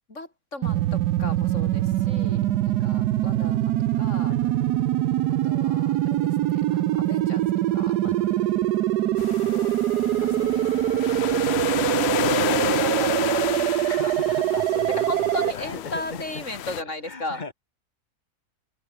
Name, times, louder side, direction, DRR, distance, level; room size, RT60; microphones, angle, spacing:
voice 1, 0.1-4.3 5.4-7.4 7.7-8.0 9.0-9.8 10.2-10.7 12.0-14.2 14.9-17.4, left 2 dB, 45° left, 6.2 m, -37 dB
sound 1, 0.6-15.5, right 14 dB, 80° right, 1.2 m, -23 dB
voice 2, 4.3-4.9 8.0-8.6 13.9-16.5 17.0-17.5, left 3 dB, 30° left, 2.1 m, -39 dB
sound 2, 9.2-16.8, left 13 dB, 85° left, 0.5 m, -31 dB
omnidirectional pair, 1.7 m